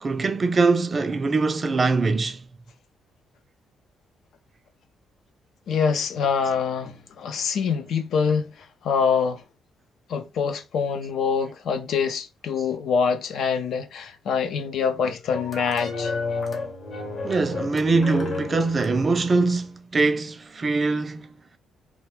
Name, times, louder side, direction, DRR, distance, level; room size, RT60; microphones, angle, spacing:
voice 1, 0.0-2.4 17.2-21.3, right 3 dB, 35° right, 0.4 m, -22 dB
voice 2, 5.7-9.4 10.1-16.1, left 6 dB, 70° left, 0.5 m, -25 dB
sound 1, 15.3-19.7, left 3 dB, 45° left, 0.9 m, -32 dB
2.3 x 2.1 x 3.1 m
cardioid pair, 90°, 0 cm